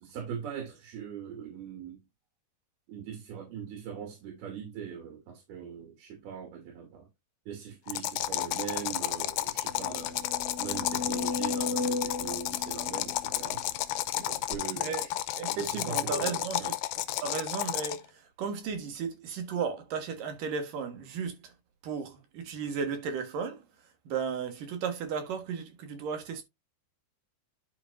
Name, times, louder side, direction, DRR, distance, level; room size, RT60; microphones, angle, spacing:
voice 1, 0.0-2.0 2.9-7.1 7.5-10.3 10.6-13.6 14.2-15.1 15.5-16.8, right 8 dB, 85° right, 4.3 m, -41 dB
sound 1, 7.9-18.1, left 15 dB, 85° left, 2.5 m, -32 dB
sound 2, 8.5-8.6 9.0-9.1 9.6-13.9 14.5-14.6, left 3 dB, 25° right, 1.8 m, -35 dB
voice 2, 14.7-15.1 15.4-16.7 17.2-21.5 21.8-23.6 24.1-26.4, right 6 dB, 65° right, 3.1 m, -35 dB
11.0 x 5.4 x 2.6 m
omnidirectional pair, 4.4 m